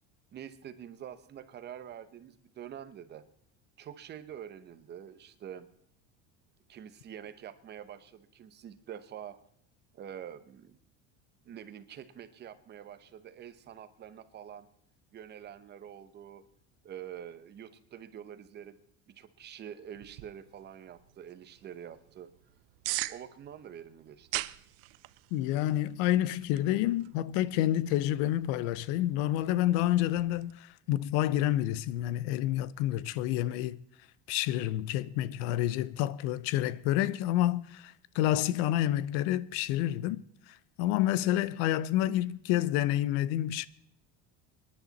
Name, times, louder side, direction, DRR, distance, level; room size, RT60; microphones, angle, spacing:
voice 1, 0.3-3.3 3.8-5.7 6.7-9.4 9.9-10.8 11.4-14.7 15.1-16.4 16.8-18.8 19.1-22.3 23.1-24.4, right 9 dB, 30° right, 1.0 m, -46 dB
sound 1, 19.9-30.5, right 20 dB, 80° right, 0.7 m, -43 dB
voice 2, 25.3-33.8 34.3-40.2 40.8-43.7, left 13 dB, 80° left, 0.7 m, -29 dB
25.0 x 11.0 x 4.1 m
cardioid pair, 165°, 34 cm